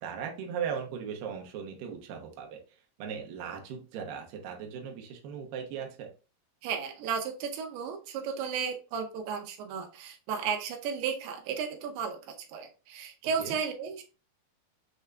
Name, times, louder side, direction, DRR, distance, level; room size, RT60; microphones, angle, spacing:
voice 1, 0.0-2.6 3.0-6.1 13.4-13.6, right 7 dB, 70° right, 2 dB, 2.4 m, -38 dB
voice 2, 6.6-12.2 12.5-14.0, right 6 dB, 90° right, 4 dB, 2.8 m, -34 dB
6.5 x 3.5 x 2.3 m, 0.33 s
omnidirectional pair, 4.5 m